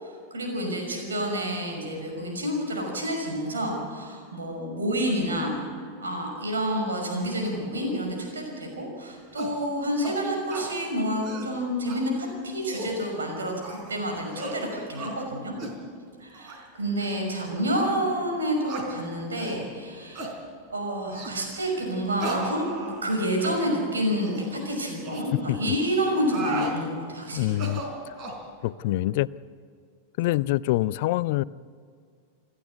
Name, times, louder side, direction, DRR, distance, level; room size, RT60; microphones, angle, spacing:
voice 1, 0.0-5.7 6.0-15.6 16.2-20.3 20.7-27.5, equal, 70° right, 2 dB, 5.9 m, -29 dB
sound 1, 9.4-9.6 10.0-10.2 10.5-10.7 11.1-11.5 11.9-12.0 12.5-13.0 13.6-13.9 14.3-14.6 15.0-15.2 15.6-15.8 16.3-16.6 17.0-17.2 17.8-17.9 18.7-18.9 19.4-19.6 20.2-20.4 21.1-21.4 22.2-23.1 23.4-23.6 24.2-24.5 25.0-25.2 26.1-26.8 27.5-28.4, right 2 dB, 35° right, 4.3 m, -35 dB
voice 2, 27.3-27.8 28.1-28.3 28.6-29.3 30.2-31.4, left 17 dB, 50° left, 21 dB, 0.4 m, -25 dB
28.5 x 11.5 x 8.2 m, 2.1 s
figure-of-eight pair, 90°, 0 cm